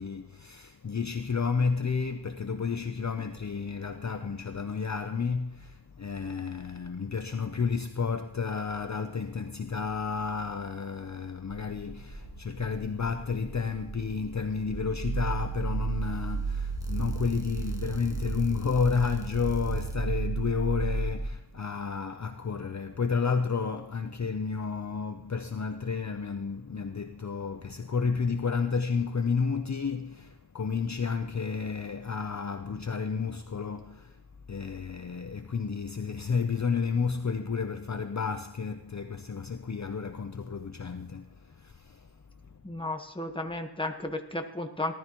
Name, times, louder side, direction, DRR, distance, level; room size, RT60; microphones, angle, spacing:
voice 1, 0.0-34.2 34.5-42.2 42.4-42.5, left 5 dB, 40° left, 0.7 m, -31 dB
sound 1, 11.5-21.3, right 4 dB, 10° right, 1.6 m, -34 dB
voice 2, 42.6-45.0, left 2 dB, 10° left, 1.4 m, -34 dB
18.5 x 12.5 x 3.0 m
wide cardioid pair, 70°, 43 cm